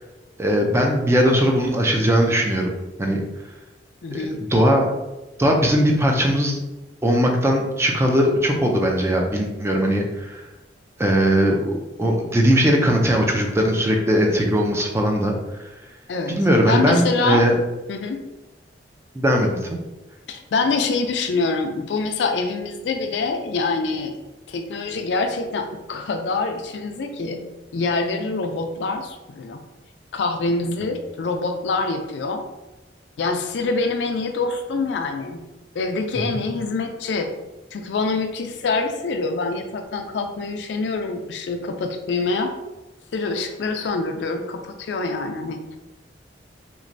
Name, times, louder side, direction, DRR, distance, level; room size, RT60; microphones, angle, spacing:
voice 1, 0.4-2.7 3.0-3.2 4.1-4.9 5.4-6.6 7.0-10.4 11.0-15.3 16.3-17.6 19.1-19.6, equal, 15° right, 1 dB, 0.4 m, -19 dB
voice 2, 4.0-4.4 16.1-16.4 16.7-17.4 17.9-18.2 20.3-24.2 24.5-27.4 27.7-29.6 30.1-32.4 33.2-35.4 35.7-37.3 37.7-42.5 43.1-45.8, left 3 dB, 70° left, 5 dB, 0.4 m, -25 dB
3.0 x 2.5 x 2.6 m, 1.0 s
head